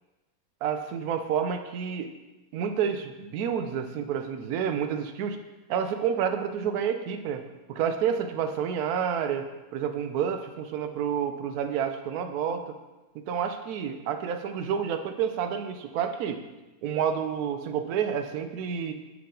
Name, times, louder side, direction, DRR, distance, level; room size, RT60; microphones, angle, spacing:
voice 1, 0.6-2.1 2.5-5.4 5.7-7.4 7.7-9.5 9.7-12.8 13.1-16.4 16.8-18.9, right 8 dB, 80° right, 7 dB, 1.1 m, -29 dB
5.7 x 4.8 x 3.8 m, 1.1 s
omnidirectional pair, 1.6 m